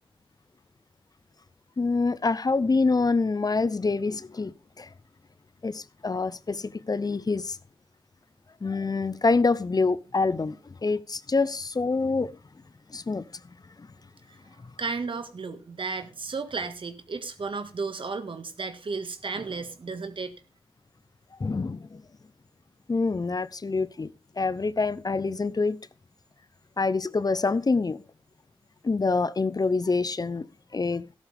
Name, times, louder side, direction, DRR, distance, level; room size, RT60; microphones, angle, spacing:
voice 1, 1.8-4.5 4.8-4.9 5.6-7.6 8.6-12.3 12.9-13.2 21.4-22.0 22.9-24.1 24.4-25.8 26.8-28.0 28.8-30.5 30.7-31.0, left 3 dB, 40° left, 0.7 m, -26 dB
voice 2, 14.8-20.4, right 4 dB, 60° right, 1.8 m, -33 dB
13.5 x 11.5 x 3.5 m
cardioid pair, 50°, 10 cm